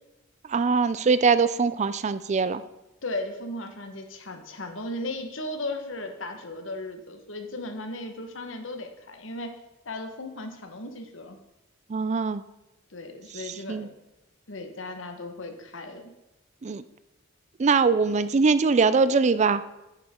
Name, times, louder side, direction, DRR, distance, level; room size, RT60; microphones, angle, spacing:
voice 1, 0.4-2.6 11.9-12.4 13.3-13.9 16.6-16.8 17.6-19.6, right 4 dB, 35° right, 14 dB, 0.4 m, -22 dB
voice 2, 3.0-9.5 9.8-11.4 12.9-13.9 14.5-16.1, left 2 dB, 70° left, 6 dB, 1.4 m, -36 dB
10.5 x 9.3 x 3.7 m, 0.98 s
head